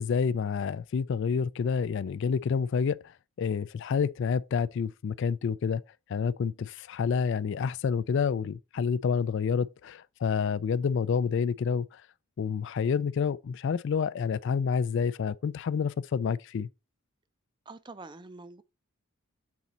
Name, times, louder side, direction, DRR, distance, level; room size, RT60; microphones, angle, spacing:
voice 1, 0.0-3.0 3.4-5.8 6.1-12.0 12.4-16.7, left 6 dB, 55° left, 0.3 m, -28 dB
voice 2, 17.7-18.6, right 3 dB, 20° right, 0.4 m, -45 dB
7.2 x 4.1 x 3.8 m
head